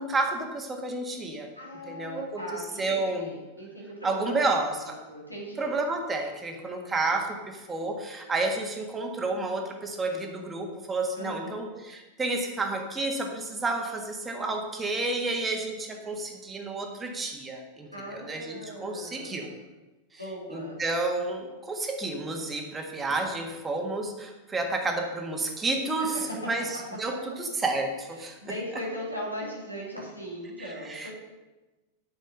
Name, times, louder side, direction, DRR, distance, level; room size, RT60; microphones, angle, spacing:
voice 1, 0.0-1.5 1.9-3.3 4.0-5.0 5.6-19.5 20.5-26.1 26.4-26.6 27.0-28.5 30.8-31.1, right 2 dB, 15° right, 3 dB, 1.7 m, -30 dB
voice 2, 1.6-5.7 11.1-11.6 17.9-19.5 20.2-20.8 26.0-26.5 27.1-27.2 28.2-31.1, equal, 85° left, -3 dB, 3.0 m, -39 dB
9.2 x 6.3 x 6.6 m, 1.2 s
figure-of-eight pair, 90°, 0 cm